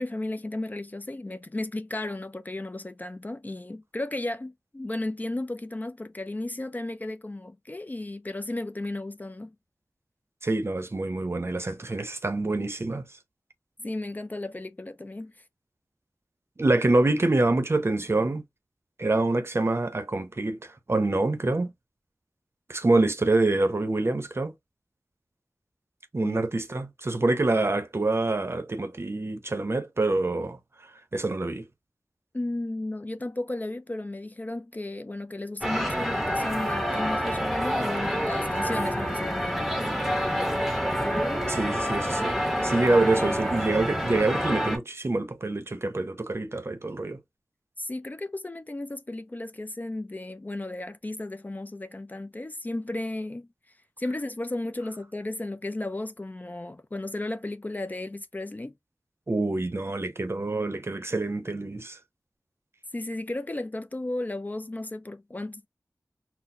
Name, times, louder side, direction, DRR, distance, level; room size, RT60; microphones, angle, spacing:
voice 1, 0.0-9.5 13.8-15.3 26.2-26.4 32.3-40.0 47.8-53.5 54.0-58.7 62.9-65.7, left 2 dB, 30° left, 0.4 m, -34 dB
voice 2, 10.4-13.0 16.6-18.4 19.0-21.7 22.7-24.5 26.1-30.6 31.1-31.7 41.1-42.4 42.6-47.2 59.3-62.0, right 2 dB, 45° right, 0.6 m, -26 dB
sound 1, 35.6-44.8, equal, ahead, 0.8 m, -27 dB
4.0 x 2.0 x 2.6 m
wide cardioid pair, 65°, 6 cm